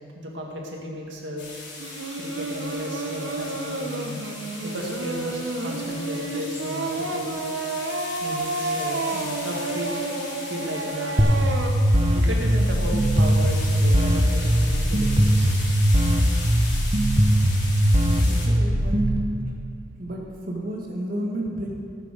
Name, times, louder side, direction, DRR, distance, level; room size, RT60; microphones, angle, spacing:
voice 1, 0.2-1.5 2.2-4.2 4.6-7.4 8.2-9.9 10.5-11.5 12.1-15.5, equal, 70° right, -1 dB, 2.0 m, -34 dB
sound 1, 1.4-18.5, left 2 dB, 70° left, 3.2 m, -38 dB
Singing, 1.8-11.7, right 2 dB, 90° right, 1.0 m, -30 dB
sound 2, 11.2-19.2, equal, 30° right, 0.9 m, -20 dB
voice 2, 18.1-19.2 20.0-21.7, right 1 dB, 50° right, -1 dB, 1.7 m, -32 dB
16.0 x 7.0 x 5.1 m, 2.4 s
head